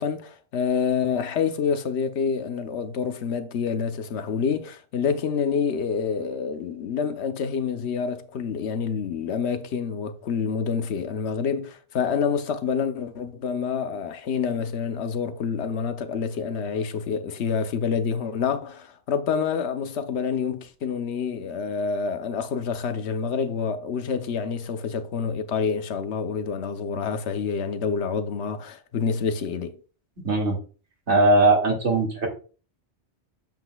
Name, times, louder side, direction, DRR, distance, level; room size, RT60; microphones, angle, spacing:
voice 1, 0.0-29.8, left 6 dB, 75° left, 1.1 m, -27 dB
voice 2, 30.2-30.6 31.1-32.3, right 2 dB, 85° right, 2.4 m, -19 dB
8.9 x 7.8 x 2.3 m
omnidirectional pair, 1.2 m